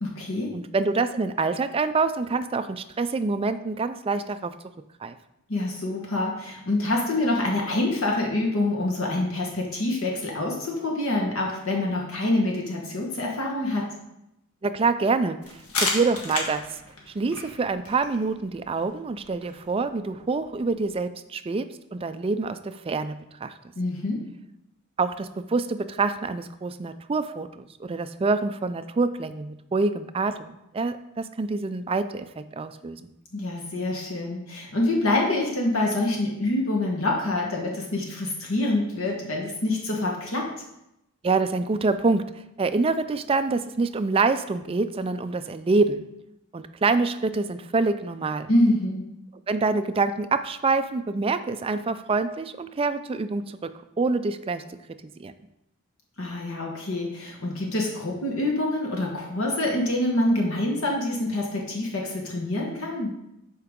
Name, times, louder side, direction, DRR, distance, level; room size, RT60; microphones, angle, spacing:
voice 1, 0.0-0.5 5.5-13.9 23.7-24.2 33.3-40.5 48.5-49.1 56.2-63.1, left 2 dB, 65° left, -1 dB, 1.3 m, -26 dB
voice 2, 0.5-4.5 5.0-5.2 14.6-16.8 17.1-23.6 25.0-33.1 41.2-46.0 46.5-48.5 49.5-53.7 54.0-54.6 55.0-55.3, right 3 dB, 25° right, 11 dB, 0.3 m, -26 dB
sound 1, 15.4-20.9, left 3 dB, 85° left, 1.6 m, -34 dB
11.5 x 4.7 x 3.7 m, 0.86 s
head